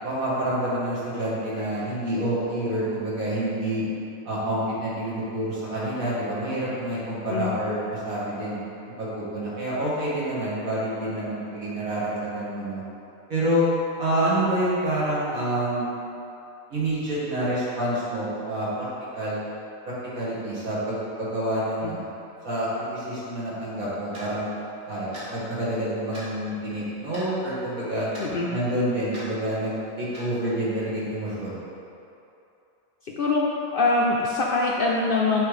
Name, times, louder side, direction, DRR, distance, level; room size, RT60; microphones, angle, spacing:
voice 1, 0.0-3.8 4.2-8.6 9.0-12.8 13.3-13.7 14.0-15.9 16.7-18.9 19.1-19.4 19.9-22.1 22.4-24.5 24.9-28.1 28.5-31.6, right 1 dB, 85° right, -8 dB, 2.1 m, -27 dB
Clock, 24.1-24.3 25.1-25.3 26.1-26.3 27.1-27.3 28.1-28.3 29.1-29.3 30.1-30.3, right 1 dB, 55° right, 1.8 m, -40 dB
voice 2, 28.2-28.5 33.0-33.4 33.7-35.4, left 3 dB, 65° left, -3 dB, 0.5 m, -23 dB
7.4 x 3.5 x 4.9 m, 2.8 s
omnidirectional pair, 1.4 m